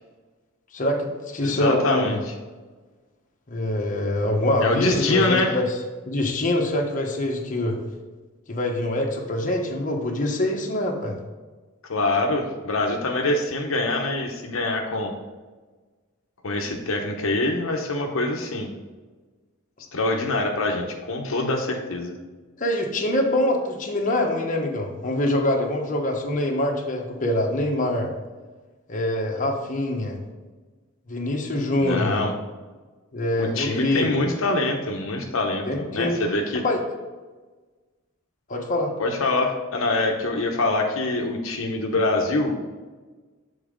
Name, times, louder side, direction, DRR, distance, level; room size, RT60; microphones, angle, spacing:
voice 1, 0.7-2.2 3.5-5.7 6.0-7.8 8.5-11.2 22.6-28.1 28.9-30.2 31.1-32.3 33.1-34.1 35.7-36.2 36.6-36.8 38.5-38.9, left 1 dB, 40° left, 0 dB, 1.1 m, -24 dB
voice 2, 1.4-2.3 4.6-5.6 11.9-15.1 16.4-18.7 19.9-22.1 31.8-32.3 33.4-36.6 39.0-42.6, left 2 dB, 75° left, 2 dB, 0.8 m, -24 dB
7.2 x 4.0 x 5.1 m, 1.3 s
head